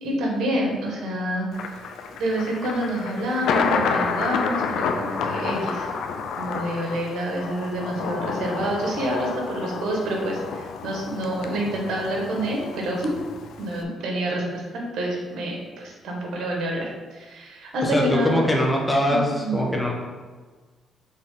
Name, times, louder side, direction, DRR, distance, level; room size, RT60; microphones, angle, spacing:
voice 1, 0.0-1.8 2.2-5.9 6.4-13.1 13.6-18.4 19.1-19.6, right 1 dB, 75° right, -1 dB, 1.6 m, -28 dB
Thunder, 1.5-13.8, left 5 dB, 75° left, 0.5 m, -29 dB
voice 2, 17.8-19.9, equal, 5° left, -2 dB, 1.4 m, -22 dB
6.5 x 3.8 x 3.9 m, 1.4 s
cardioid pair, 90°, 0 cm